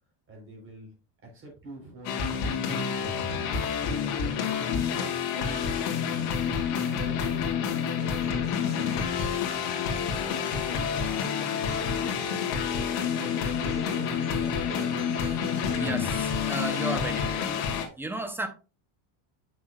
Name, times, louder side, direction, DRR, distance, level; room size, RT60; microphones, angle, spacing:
voice 1, 0.3-0.9 1.2-3.3 3.7-4.7 4.9-6.6 6.9-9.2 9.8-12.5 13.6-15.6, right 1 dB, 30° right, 3.8 m, -46 dB
sound 1, 2.0-17.9, left 7 dB, 80° left, 1.9 m, -28 dB
Acoustic guitar, 8.0-16.0, right 9 dB, 70° right, 1.7 m, -46 dB
voice 2, 15.7-17.6 18.0-18.5, right 2 dB, 5° right, 0.6 m, -34 dB
7.7 x 6.2 x 2.3 m
cardioid pair, 150°, 44 cm